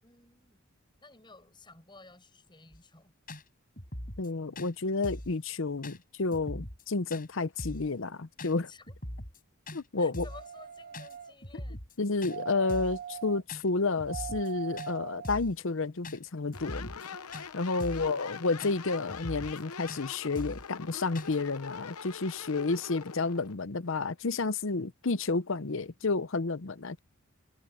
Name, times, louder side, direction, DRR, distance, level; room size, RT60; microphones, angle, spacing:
voice 1, 0.0-0.7 1.0-3.1 8.7-8.9 10.0-11.8 17.8-18.2, left 3 dB, 20° left, 7.9 m, -54 dB
sound 1, 2.7-2.8 3.3-3.4 3.8-4.3 4.6-4.7 5.0-5.3 5.8-6.0 6.3-6.8 7.1-7.3 7.6-7.9 8.4-8.5 8.9-9.4 9.7-9.8 10.1-10.5 10.9-11.2 11.4-12.0 12.2-12.4 12.7-13.0 13.5-13.6 14.0-14.5 14.8-14.9 15.2-15.6 16.0-16.2 16.5-17.1 17.3-17.5 17.8-18.1 18.6-18.7 19.1-19.6 19.9-20.0 20.4-20.7 21.2-21.4, left 1 dB, 40° left, 7.3 m, -41 dB
voice 2, 4.2-8.7 9.7-10.3 12.0-17.1 17.5-27.0, left 3 dB, 60° left, 0.7 m, -31 dB
sound 2, 10.3-11.3 12.3-13.4 14.1-15.3 15.9-16.0, right 9 dB, 40° right, 1.1 m, -41 dB
sound 3, 16.5-23.5, left 6 dB, 90° left, 1.0 m, -44 dB
head